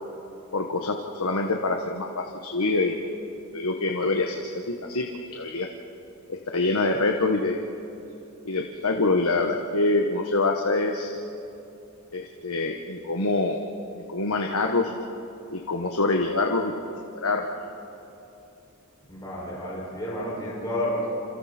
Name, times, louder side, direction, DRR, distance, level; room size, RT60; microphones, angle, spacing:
voice 1, 0.5-3.2 3.5-5.7 6.3-7.7 8.4-11.2 12.1-13.6 14.0-14.9 15.5-16.7 17.1-17.5, left 3 dB, 85° left, 2 dB, 1.4 m, -25 dB
voice 2, 19.1-21.1, left 1 dB, 15° left, -6 dB, 6.1 m, -30 dB
28.5 x 28.0 x 4.4 m, 2.9 s
head